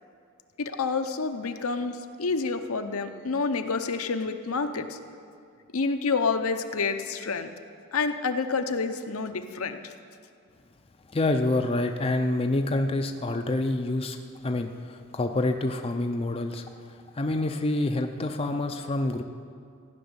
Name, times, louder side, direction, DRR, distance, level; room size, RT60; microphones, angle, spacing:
voice 1, 0.6-5.0 5.7-7.5 7.9-9.9, left 4 dB, 70° left, 7 dB, 0.7 m, -28 dB
voice 2, 11.1-14.2 14.4-19.2, left 2 dB, 25° left, 5 dB, 0.5 m, -27 dB
15.5 x 6.2 x 9.6 m, 2.3 s
head